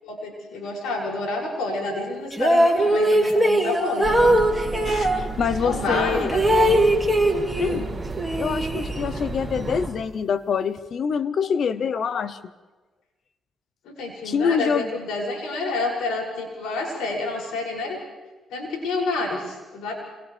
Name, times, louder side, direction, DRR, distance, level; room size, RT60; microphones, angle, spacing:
voice 1, 0.0-4.4 5.6-6.8 7.6-7.8 13.8-18.0 18.5-19.9, left 2 dB, 90° left, -1 dB, 6.8 m, -29 dB
sound 1, 2.3-5.2 5.9-7.8 8.2-9.3, right 1 dB, ahead, 3.3 m, -21 dB
sound 2, 4.0-9.9, right 3 dB, 15° right, 6.6 m, -32 dB
voice 2, 4.8-6.3 7.6-7.9 8.4-12.4 14.2-14.9, left 6 dB, 55° left, 14 dB, 0.8 m, -25 dB
28.5 x 26.5 x 3.4 m, 1.3 s
cardioid pair, 90°, 0 cm